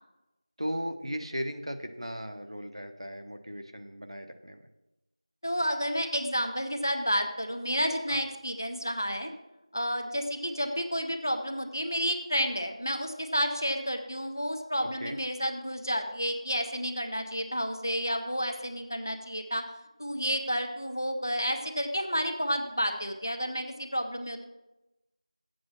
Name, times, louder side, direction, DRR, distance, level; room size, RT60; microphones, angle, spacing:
voice 1, 0.6-4.6 8.1-8.2 14.8-15.2, equal, 60° right, 6 dB, 0.9 m, -37 dB
voice 2, 5.4-9.3 9.7-19.6 20.0-24.4, equal, 35° left, 6 dB, 0.6 m, -30 dB
7.7 x 7.3 x 5.7 m, 0.99 s
figure-of-eight pair, 180°, 3 cm